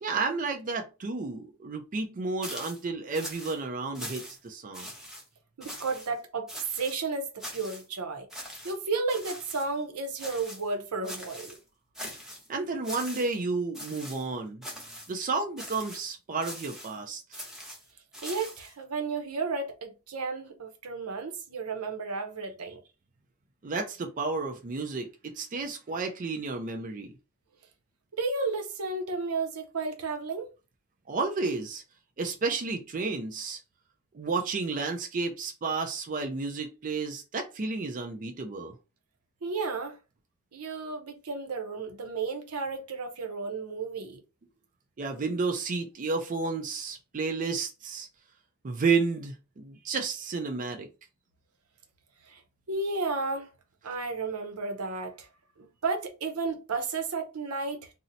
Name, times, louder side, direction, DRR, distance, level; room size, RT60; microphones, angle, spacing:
voice 1, 0.0-4.9 12.5-14.6 15.1-17.4 23.6-27.1 31.1-31.8 32.2-33.6 34.1-38.8 45.0-48.1 48.6-50.9, right 4 dB, 40° right, 0.4 m, -31 dB
sound 1, 2.4-2.8 3.1-3.6 3.9-4.5 4.7-5.2 5.6-6.1 6.5-7.0 7.4-7.9 8.3-8.8 9.1-9.7 10.2-10.7 11.0-11.6 11.9-12.5 12.8-13.4 13.7-14.3 14.6-15.1 15.6-16.1 16.4-17.0 17.3-18.7, equal, ahead, 0.8 m, -42 dB
voice 2, 5.6-8.3 8.6-11.6 18.2-22.8 28.2-30.5 39.4-40.0 40.5-44.2 52.3-52.4 52.7-53.5 53.8-55.3 55.6-57.9, right 4 dB, 85° right, 0.7 m, -33 dB
2.8 x 2.0 x 3.8 m
head